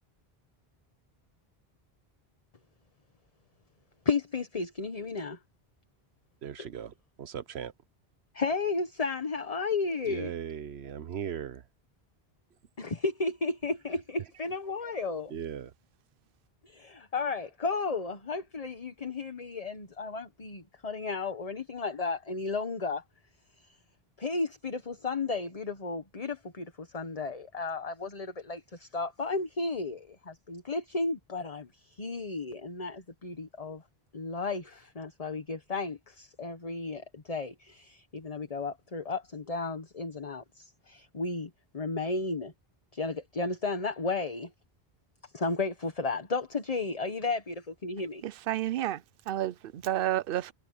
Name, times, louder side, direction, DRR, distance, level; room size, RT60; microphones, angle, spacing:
voice 1, 4.0-5.4 6.6-6.7 8.3-10.3 12.8-15.3 16.6-23.0 24.2-31.7 32.0-33.8 34.1-42.5 42.9-44.5 45.3-48.2, left 3 dB, 35° left, 1.3 m, -33 dB
voice 2, 6.4-6.9 7.3-7.7 10.1-11.5 15.3-15.6, right 9 dB, 90° right, 1.1 m, -37 dB
voice 3, 48.2-50.5, right 12 dB, 65° right, 0.7 m, -31 dB
omnidirectional pair, 1.1 m